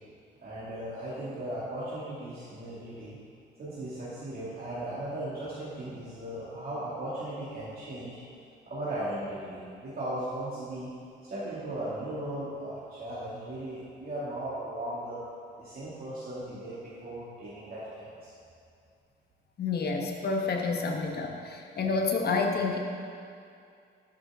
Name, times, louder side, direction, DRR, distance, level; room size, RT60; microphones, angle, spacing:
voice 1, 0.4-3.2 3.6-8.2 8.6-10.9 11.2-15.2 15.6-18.3, right 1 dB, 50° right, -10 dB, 2.3 m, -37 dB
voice 2, 19.6-22.8, left 4 dB, 55° left, 2 dB, 1.2 m, -29 dB
12.0 x 6.3 x 3.6 m, 2.4 s
cardioid pair, 90°, 20 cm